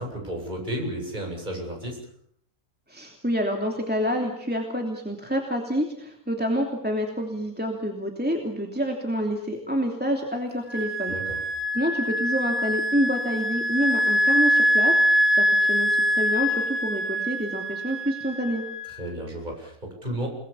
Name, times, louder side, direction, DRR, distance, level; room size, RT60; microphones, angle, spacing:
voice 1, 0.0-2.0 11.1-11.4 18.9-20.3, right 1 dB, 30° right, 0 dB, 8.2 m, -33 dB
voice 2, 2.9-11.1 11.7-18.6, equal, 5° right, 2 dB, 3.0 m, -28 dB
Wind instrument woodwind instrument, 10.7-19.0, equal, 15° left, 2.0 m, -24 dB
30.0 x 20.5 x 7.2 m, 0.67 s
omnidirectional pair, 1.5 m